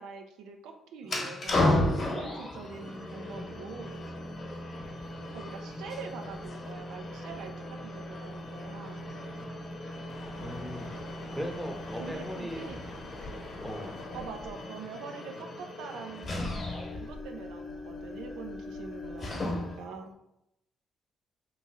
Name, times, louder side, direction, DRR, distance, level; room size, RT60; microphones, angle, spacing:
voice 1, 0.0-4.0 5.3-9.0 12.0-12.8 14.1-16.5 16.9-20.1, right 5 dB, 90° right, 4 dB, 0.4 m, -44 dB
sound 1, 1.0-19.9, left 1 dB, 40° left, 1.0 m, -36 dB
sound 2, 2.5-14.0, right 1 dB, 15° left, 0.3 m, -44 dB
sound 3, 3.8-19.9, left 2 dB, 75° left, 0.7 m, -52 dB
voice 2, 10.4-10.9 11.3-12.7 13.6-14.0, equal, 5° right, 1 dB, 0.7 m, -38 dB
3.0 x 2.5 x 3.9 m, 0.84 s
cardioid pair, 90°, 0 cm